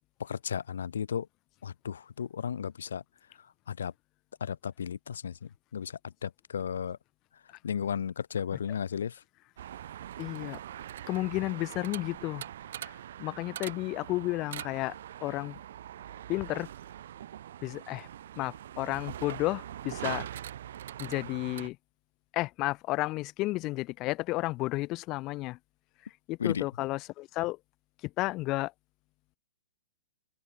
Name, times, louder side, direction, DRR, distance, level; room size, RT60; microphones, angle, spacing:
voice 1, 0.2-1.3 1.6-3.0 3.7-3.9 4.4-5.3 5.7-5.9 6.2-7.0 7.6-9.1 26.4-26.7, left 7 dB, 80° left, 1.9 m, -34 dB
sound 1, 9.6-21.7, right 11 dB, 60° right, 1.8 m, -42 dB
voice 2, 10.2-10.6 11.1-12.4 12.8-14.9 15.2-15.6 16.3-16.7 17.6-18.1 18.4-20.3 21.0-21.8 22.3-25.6 26.3-27.6 28.0-28.7, left 20 dB, 25° left, 1.3 m, -32 dB
hypercardioid pair, 155°, 0 cm